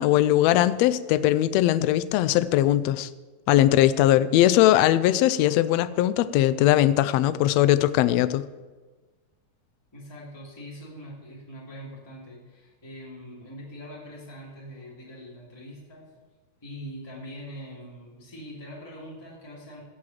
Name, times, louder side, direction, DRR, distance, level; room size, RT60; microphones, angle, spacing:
voice 1, 0.0-3.1 3.5-8.4, left 13 dB, 80° left, 1.5 m, -20 dB
voice 2, 9.9-16.1 16.6-19.8, equal, 10° left, 2.6 m, -42 dB
16.5 x 6.3 x 7.4 m
omnidirectional pair, 3.5 m